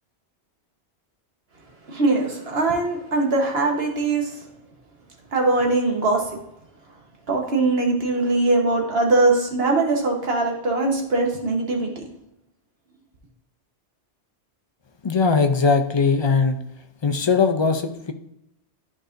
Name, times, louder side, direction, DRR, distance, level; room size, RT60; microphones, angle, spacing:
voice 1, 1.9-4.4 5.3-6.3 7.3-12.0, right 2 dB, 65° right, 1 dB, 1.5 m, -21 dB
voice 2, 15.0-16.6 17.0-18.1, left 5 dB, 40° left, 7 dB, 0.4 m, -20 dB
11.5 x 4.8 x 2.6 m, 0.83 s
omnidirectional pair, 1.1 m